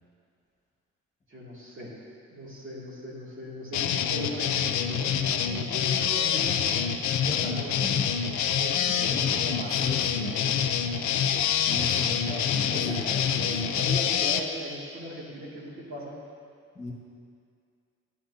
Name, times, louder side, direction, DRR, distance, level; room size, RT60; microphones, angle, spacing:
voice 1, 1.3-1.9 2.3-6.9 8.6-9.3 12.7-13.1 13.4-16.1, equal, 40° right, -6 dB, 2.5 m, -39 dB
sound 1, 3.7-14.4, left 8 dB, 70° left, 0.5 m, -26 dB
voice 2, 7.2-8.1 8.8-10.6 11.7-13.5 16.7-16.9, left 1 dB, 25° left, -4 dB, 1.6 m, -37 dB
10.0 x 9.5 x 2.8 m, 2.3 s
cardioid pair, 90°, 30 cm